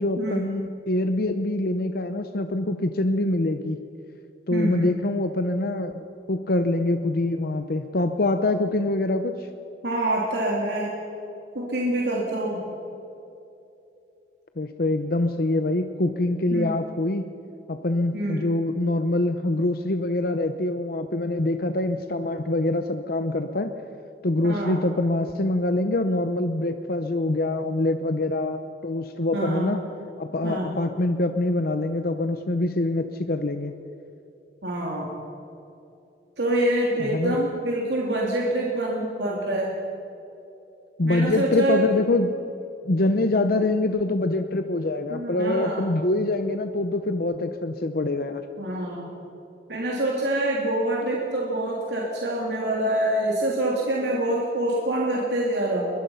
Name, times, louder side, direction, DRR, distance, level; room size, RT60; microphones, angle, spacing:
voice 1, 0.0-3.8 4.5-9.5 14.6-17.3 17.7-23.7 24.2-29.8 30.2-33.7 37.0-37.4 41.0-42.4 42.8-48.4, left 2 dB, 55° left, 8 dB, 0.8 m, -25 dB
voice 2, 4.5-4.9 9.8-10.9 11.5-12.6 16.5-16.7 18.1-18.4 24.4-24.8 29.3-29.7 30.4-30.7 34.6-35.1 36.4-39.7 41.0-41.8 45.1-45.8 48.6-49.1 49.7-55.9, right 1 dB, 70° right, -3 dB, 3.2 m, -26 dB
22.0 x 21.5 x 5.7 m, 2.7 s
head